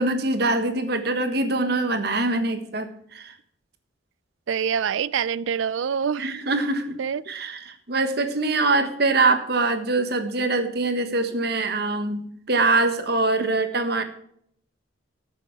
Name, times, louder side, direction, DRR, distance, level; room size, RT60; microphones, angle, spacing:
voice 1, 0.0-3.3 6.2-7.0 7.3-12.2 12.5-14.0, right 3 dB, 55° right, 8 dB, 1.4 m, -23 dB
voice 2, 4.5-6.3 7.0-7.2 13.4-13.5, right 7 dB, 80° right, 20 dB, 0.4 m, -25 dB
14.0 x 7.0 x 4.7 m, 0.67 s
head